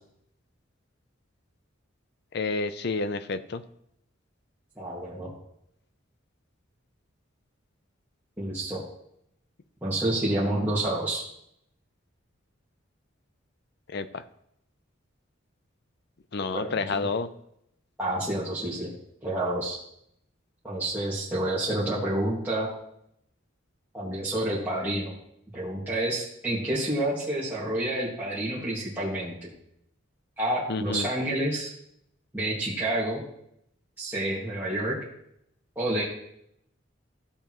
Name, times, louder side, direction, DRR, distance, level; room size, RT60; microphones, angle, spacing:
voice 1, 2.3-3.6 13.9-14.2 16.3-17.3 30.7-31.1, left 3 dB, 55° left, 12 dB, 0.5 m, -29 dB
voice 2, 4.8-5.3 8.4-8.8 9.8-11.2 16.5-17.1 18.0-18.9 19.2-19.8 20.6-22.7 23.9-25.1 25.5-29.3 30.4-31.7 32.3-33.2 34.0-34.9 35.8-36.0, right 1 dB, 10° right, -9 dB, 1.8 m, -29 dB
14.5 x 6.9 x 3.0 m, 0.76 s
head